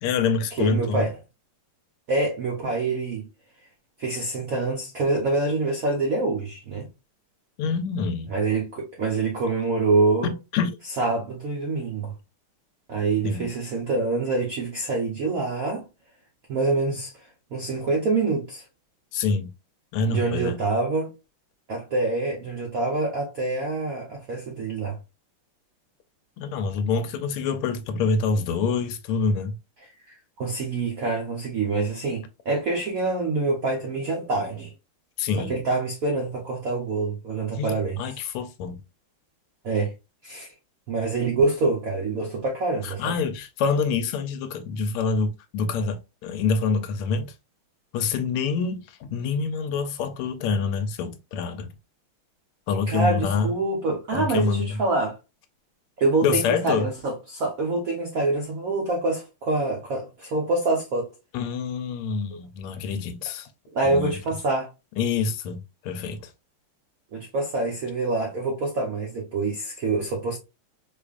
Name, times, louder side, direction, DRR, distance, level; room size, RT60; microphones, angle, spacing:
voice 1, 0.0-1.1 7.6-8.3 10.2-10.7 13.2-13.5 19.1-19.5 19.9-20.6 26.4-29.6 35.2-35.6 37.5-38.8 42.8-47.3 47.9-51.7 52.7-53.5 54.1-54.8 56.2-56.9 61.3-63.5 63.8-64.2 65.0-66.3, left 5 dB, 85° left, 1.5 m, -26 dB
voice 2, 0.6-1.1 2.1-3.3 4.0-6.9 8.3-10.3 11.0-12.1 12.9-15.8 16.5-17.1 17.5-18.6 20.1-21.1 21.7-25.0 30.1-34.7 35.5-38.0 39.6-39.9 40.2-40.5 40.9-43.2 52.9-55.2 56.0-61.1 63.7-64.7 67.1-70.4, right 3 dB, 75° right, 0.7 m, -26 dB
4.8 x 2.4 x 2.4 m
omnidirectional pair, 2.4 m